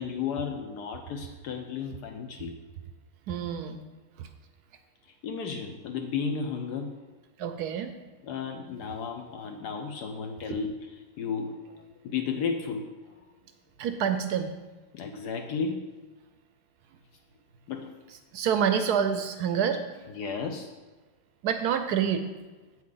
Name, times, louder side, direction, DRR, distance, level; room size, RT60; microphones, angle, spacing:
voice 1, 0.0-2.6 5.2-7.0 8.2-13.1 14.9-15.9 17.7-18.0 20.1-20.7, left 5 dB, 70° left, 4 dB, 1.1 m, -34 dB
voice 2, 3.3-3.8 4.2-4.3 7.4-7.9 13.8-14.5 18.3-19.8 21.4-22.2, right 8 dB, 70° right, 8 dB, 1.0 m, -27 dB
7.7 x 7.3 x 3.9 m, 1.2 s
omnidirectional pair, 2.0 m